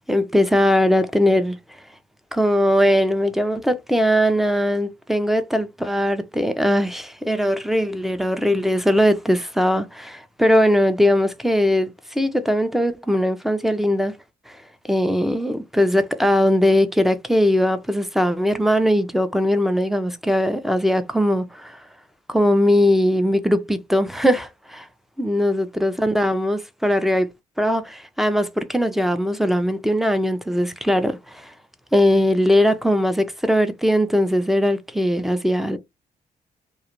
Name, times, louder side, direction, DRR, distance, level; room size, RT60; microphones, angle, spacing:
voice 1, 0.1-1.6 2.3-14.2 14.5-14.6 14.9-21.8 22.3-24.9 25.2-27.3 27.6-31.5 31.9-35.8, equal, ahead, 0.6 m, -20 dB
2.3 x 2.1 x 3.0 m
supercardioid pair, 45°, 18 cm